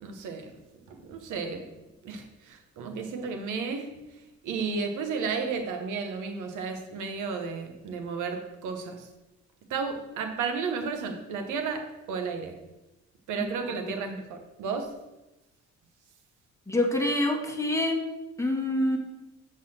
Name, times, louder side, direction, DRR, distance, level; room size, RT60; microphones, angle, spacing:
voice 1, 0.0-0.5 0.9-1.7 2.0-3.9 4.4-9.1 9.7-12.6 13.3-15.0, right 5 dB, 85° right, 1.1 m, -33 dB
voice 2, 16.7-18.0 18.4-19.0, left 1 dB, 10° left, 1.5 m, -26 dB
7.6 x 4.0 x 6.2 m
cardioid pair, 90°, 30 cm